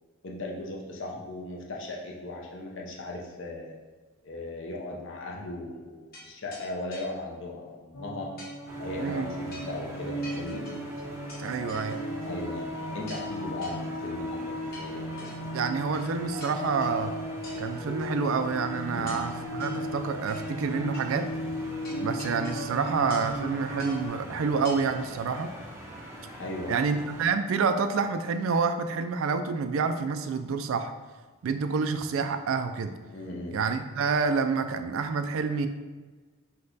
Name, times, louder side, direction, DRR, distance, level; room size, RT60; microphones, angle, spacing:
voice 1, 0.2-3.8 4.2-8.3 8.8-10.7 12.2-12.7 12.9-15.3 18.8-19.2 26.4-26.8 33.1-33.6, left 2 dB, 60° left, -1 dB, 0.7 m, -37 dB
sound 1, 6.1-6.3 6.5-6.7 6.9-7.1 8.4-8.5 9.5-9.8 10.2-11.4 11.7-12.3 12.6-12.7 13.1-13.3 13.6-13.8 14.7-15.4 15.9-16.1 16.4-17.0 17.4-17.6 18.0-18.1 19.1-19.3 19.6-19.8 20.3-20.7 20.9-21.1 21.8-22.7 23.1-23.4 23.8-24.0 24.7-24.8 25.2-25.3, left 1 dB, 45° left, 1.2 m, -46 dB
sound 2, 7.9-24.1, equal, 75° left, 1.3 m, -36 dB
sound 3, 8.7-27.3, equal, 10° right, 0.5 m, -44 dB
voice 2, 11.4-12.0 15.5-17.1 17.6-21.3 22.0-25.5 26.7-30.9 31.4-33.0 33.5-35.7, right 5 dB, 70° right, 9 dB, 0.3 m, -28 dB
5.3 x 2.3 x 3.9 m, 1.4 s
head